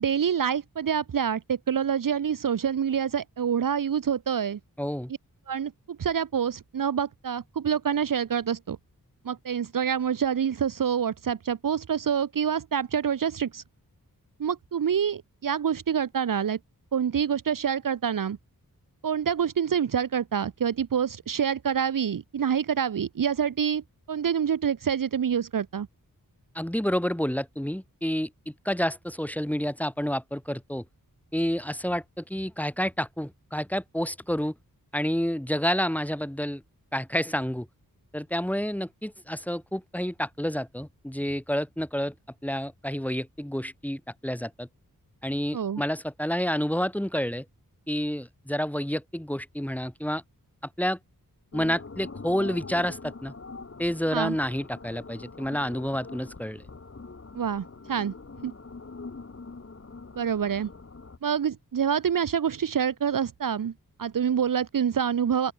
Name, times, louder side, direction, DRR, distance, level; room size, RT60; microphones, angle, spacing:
voice 1, 0.0-4.6 5.5-8.8 9.2-13.6 14.4-16.6 16.9-18.4 19.0-25.9 45.5-45.8 54.1-54.4 57.3-58.1 58.4-58.5 60.2-60.7 61.2-63.7 64.0-65.5, right 8 dB, 65° right, 0.8 m, -27 dB
voice 2, 4.8-5.1 26.5-30.8 31.3-34.5 34.9-36.6 36.9-37.7 38.1-42.1 42.4-44.7 45.2-47.4 47.9-50.2 50.8-51.0 51.5-53.3 53.8-56.6, equal, 5° left, 5.7 m, -29 dB
sound 1, 51.5-61.2, left 4 dB, 40° left, 2.9 m, -43 dB
open air
wide cardioid pair, 115°, 35 cm